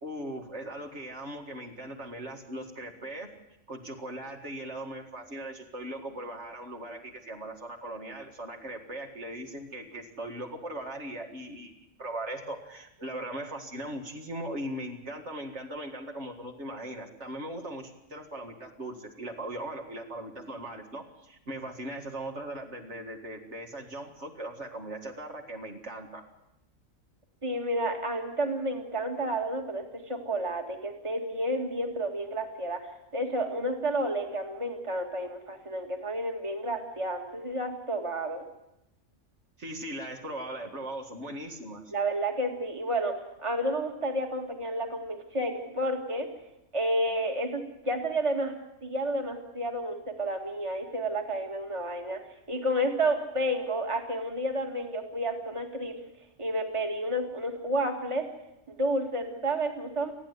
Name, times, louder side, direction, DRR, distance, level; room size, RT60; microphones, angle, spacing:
voice 1, 0.0-3.3 3.7-11.7 12.0-26.2 39.6-41.8, right 1 dB, 55° right, 3 dB, 2.3 m, -39 dB
voice 2, 27.4-38.4 41.9-43.1 43.4-46.3 46.7-48.5 48.8-52.2 52.5-56.0 56.4-58.3 58.7-60.1, right 1 dB, 20° right, 3 dB, 2.0 m, -30 dB
29.0 x 9.7 x 9.5 m, 0.89 s
omnidirectional pair, 1.4 m